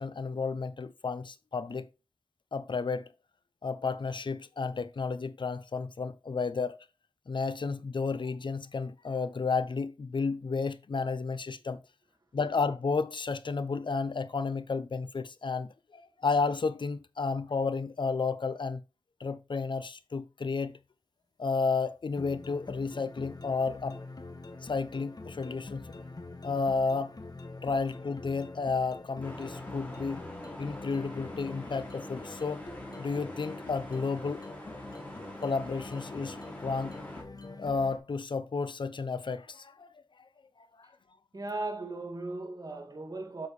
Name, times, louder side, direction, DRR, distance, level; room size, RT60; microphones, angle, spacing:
voice 1, 0.0-1.9 2.5-3.1 3.6-6.8 7.3-11.8 12.3-18.8 19.2-20.8 21.4-24.0 24.6-25.9 26.4-27.2 27.6-30.2 30.6-32.7 33.0-34.4 35.4-37.0 37.6-39.9 40.6-40.9, left 4 dB, 70° left, 0.7 m, -32 dB
sound 1, 22.2-38.0, left 3 dB, 50° left, 1.5 m, -45 dB
sound 2, 29.2-37.2, equal, 15° left, 3.1 m, -45 dB
voice 2, 41.3-43.5, right 2 dB, 50° right, 2.2 m, -37 dB
7.2 x 6.3 x 3.2 m
wide cardioid pair, 55°, 8 cm